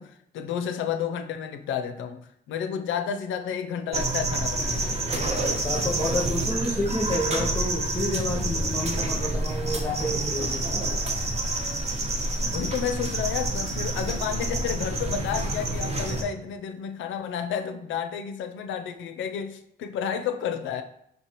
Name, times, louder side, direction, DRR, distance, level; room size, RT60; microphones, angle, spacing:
voice 1, 0.0-5.0 12.5-20.8, left 8 dB, 75° left, 8 dB, 0.4 m, -31 dB
sound 1, 3.9-16.2, right 2 dB, 35° right, 0.8 m, -28 dB
voice 2, 5.4-10.6, left 1 dB, 20° left, -3 dB, 0.7 m, -29 dB
5.3 x 3.1 x 2.9 m, 0.73 s
cardioid pair, 90°, 20 cm